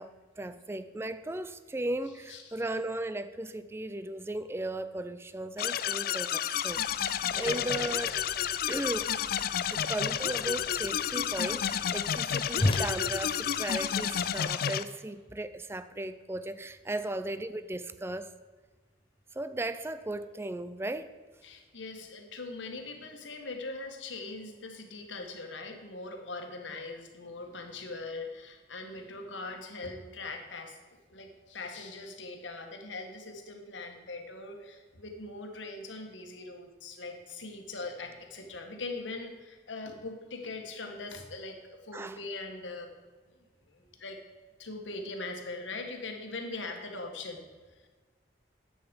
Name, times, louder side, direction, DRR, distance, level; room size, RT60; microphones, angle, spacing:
voice 1, 0.0-8.1 8.7-9.2 9.7-18.3 19.3-21.1 41.9-42.2, right 1 dB, 15° right, 13 dB, 0.4 m, -36 dB
sound 1, 5.6-14.8, left 9 dB, 55° left, 0.4 m, -31 dB
Whoosh swoosh swish, 6.7-14.4, left 1 dB, 30° left, 0.7 m, -38 dB
voice 2, 7.2-8.3 21.4-42.9 43.3-43.4 43.7-44.2 44.6-47.4 47.8-47.9, left 3 dB, 80° left, 4 dB, 1.5 m, -41 dB
10.0 x 8.1 x 5.2 m, 1.4 s
head